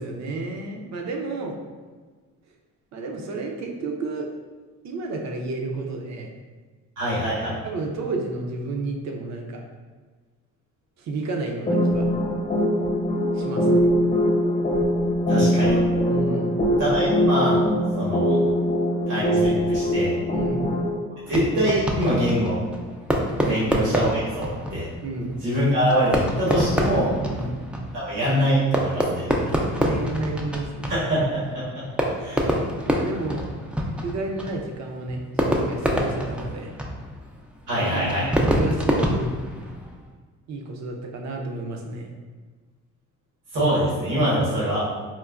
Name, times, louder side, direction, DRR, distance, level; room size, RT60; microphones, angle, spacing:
voice 1, 0.0-1.6 2.9-4.3 4.8-6.3 7.6-9.6 11.0-12.1 13.3-13.8 16.1-16.6 20.3-20.7 23.4-23.7 25.0-25.4 27.3-27.6 29.3-30.9 32.3-33.5 33.9-36.7 37.8-39.3 40.5-42.1, right 3 dB, 65° right, 2 dB, 0.6 m, -31 dB
voice 2, 7.0-7.6 15.3-15.8 16.8-17.6 18.0-18.4 19.1-20.1 21.3-22.6 23.4-24.9 25.4-27.2 27.9-29.3 30.9-31.4 32.1-32.4 37.7-38.3 43.5-44.8, equal, 85° right, -9 dB, 1.4 m, -23 dB
sound 1, 11.7-20.9, equal, 30° left, 0.9 m, -22 dB
Fireworks, 21.3-40.1, equal, 5° right, 0.3 m, -27 dB
4.3 x 2.1 x 2.4 m, 1.4 s
cardioid pair, 90°, 30 cm